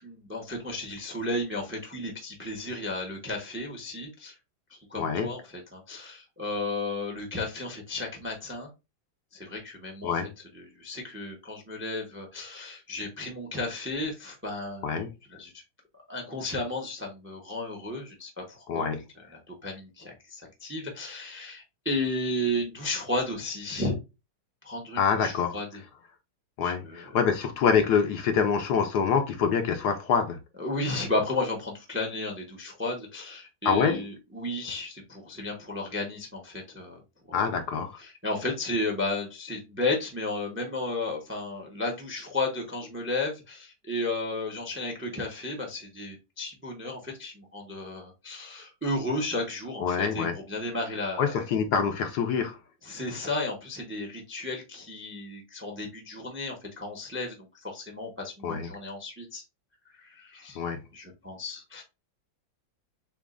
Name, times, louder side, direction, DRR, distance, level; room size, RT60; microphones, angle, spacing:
voice 1, 0.0-4.4 4.7-8.7 9.3-10.2 10.5-15.0 15.3-15.5 16.1-18.8 19.3-23.9 24.6-25.8 26.6-27.1 30.6-37.0 37.3-37.4 38.0-51.4 52.8-59.4 60.0-60.6 60.9-61.8, left 2 dB, 10° right, 0.6 m, -33 dB
voice 2, 5.0-5.3 10.0-10.3 14.8-15.1 18.7-19.0 25.0-25.6 26.6-30.4 33.6-34.0 37.3-38.0 49.8-50.4 51.2-52.6 58.4-58.7 60.6-60.8, left 6 dB, 70° left, 1.1 m, -25 dB
7.1 x 2.5 x 2.5 m
omnidirectional pair, 2.0 m